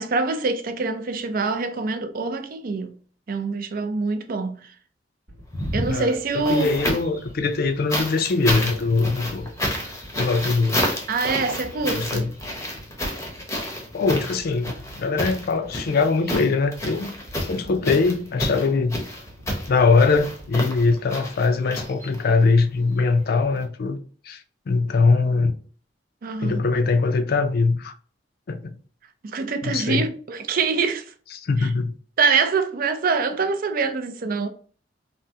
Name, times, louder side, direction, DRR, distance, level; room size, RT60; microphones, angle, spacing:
voice 1, 0.0-2.9 3.3-4.7 5.7-6.7 11.1-12.3 26.2-26.6 29.2-31.1 31.6-31.7 32.2-34.5, right 4 dB, 50° right, 0.4 m, -25 dB
sound 1, 5.3-21.2, equal, 75° right, 0.9 m, -47 dB
sound 2, 5.4-7.2 7.9-22.4 23.5-23.6, equal, 15° left, 0.7 m, -30 dB
voice 2, 5.9-9.5 10.1-10.9 11.9-12.3 13.9-17.1 17.4-19.0 19.7-24.0 24.2-25.6 26.4-27.9 28.5-28.8 29.6-30.1 31.4-31.9, left 4 dB, 55° left, 0.4 m, -22 dB
3.4 x 2.1 x 2.7 m
head